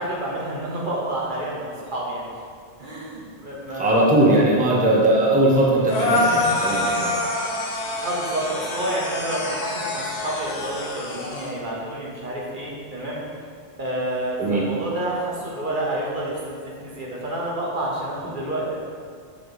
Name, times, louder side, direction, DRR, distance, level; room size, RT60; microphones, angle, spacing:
voice 1, 0.0-2.3 2.8-4.6 8.0-13.2 13.8-18.8, right 1 dB, 50° right, -4 dB, 1.1 m, -29 dB
voice 2, 3.7-7.1 14.4-14.6, right 1 dB, 10° right, -5 dB, 0.8 m, -19 dB
sound 1, 5.9-11.5, left 2 dB, 75° left, 1.1 m, -26 dB
6.6 x 3.6 x 4.7 m, 2.1 s
omnidirectional pair, 1.1 m